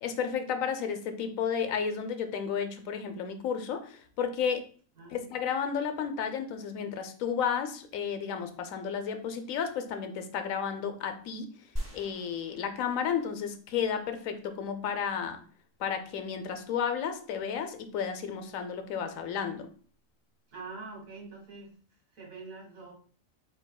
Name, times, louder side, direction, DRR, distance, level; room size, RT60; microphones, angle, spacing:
voice 1, 0.0-4.7 5.1-11.5 11.9-15.4 15.8-19.7, left 7 dB, 80° left, 8 dB, 1.0 m, -32 dB
voice 2, 5.0-5.4 20.5-21.7 22.1-22.9, right 3 dB, 75° right, -2 dB, 2.1 m, -45 dB
sound 1, 11.8-13.5 14.0-14.1, equal, 15° right, 1.6 m, -40 dB
4.8 x 4.2 x 2.3 m, 0.42 s
omnidirectional pair, 1.4 m